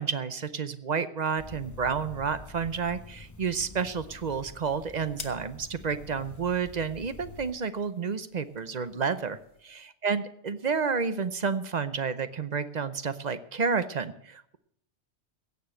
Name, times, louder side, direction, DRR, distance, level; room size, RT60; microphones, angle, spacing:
voice 1, 0.0-9.4 9.6-14.6, right 5 dB, 45° right, 13 dB, 0.7 m, -30 dB
sound 1, 1.4-7.5, left 3 dB, 20° left, 0.8 m, -47 dB
sound 2, 2.9-9.7, left 5 dB, 70° left, 1.5 m, -52 dB
16.5 x 6.8 x 7.6 m, 0.70 s
omnidirectional pair, 1.2 m